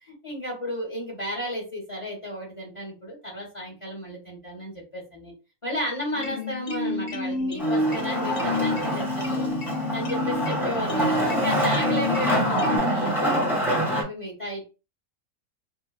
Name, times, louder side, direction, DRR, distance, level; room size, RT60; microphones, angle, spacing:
voice 1, 0.0-5.3 5.6-9.5 9.9-13.4 13.7-14.6, equal, 25° left, -4 dB, 0.9 m, -33 dB
sound 1, 6.1-12.8, left 2 dB, 65° left, 0.5 m, -29 dB
Wood, 7.6-14.0, right 1 dB, ahead, 0.8 m, -26 dB
2.8 x 2.3 x 2.3 m, 0.31 s
omnidirectional pair, 1.5 m